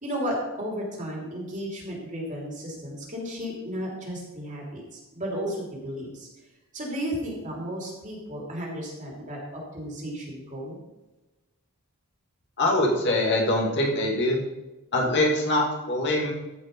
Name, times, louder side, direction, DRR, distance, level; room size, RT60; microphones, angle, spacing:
voice 1, 0.0-6.3 6.7-9.4 9.7-10.8, equal, 35° right, -2 dB, 3.2 m, -33 dB
voice 2, 12.6-14.4 14.9-16.3, left 1 dB, 50° left, -2 dB, 2.3 m, -23 dB
14.5 x 5.5 x 5.4 m, 1.1 s
head